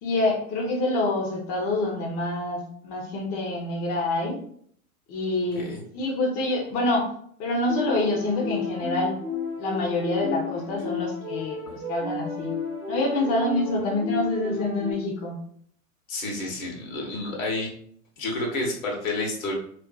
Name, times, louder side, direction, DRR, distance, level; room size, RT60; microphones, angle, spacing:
voice 1, 0.0-4.4 5.1-7.1 7.4-9.2 9.6-12.5 12.9-15.4, left 2 dB, 40° left, -2 dB, 0.7 m, -26 dB
sound 1, 7.7-14.9, left 4 dB, 15° right, 0.5 m, -32 dB
voice 2, 16.1-17.7 18.2-19.5, left 2 dB, 65° left, 0 dB, 1.0 m, -30 dB
2.5 x 2.4 x 2.2 m, 0.62 s
hypercardioid pair, 90°, 42 cm